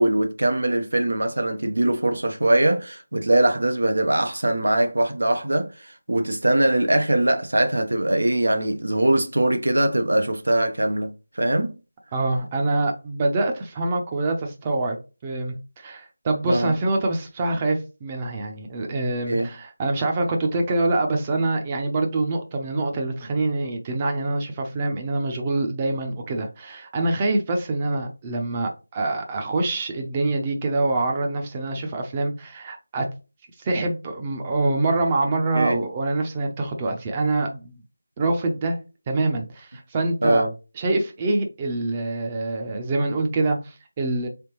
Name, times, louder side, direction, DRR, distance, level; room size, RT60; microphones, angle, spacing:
voice 1, 0.0-11.7 16.5-16.7 19.3-19.5 35.5-35.9 40.2-40.5, right 1 dB, 80° right, 0.8 m, -22 dB
voice 2, 12.1-15.0 15.2-33.1 33.6-37.7 38.2-38.8 39.1-40.4 40.8-44.3, right 2 dB, 20° right, 0.6 m, -25 dB
3.6 x 3.4 x 3.0 m
figure-of-eight pair, 170°, 0 cm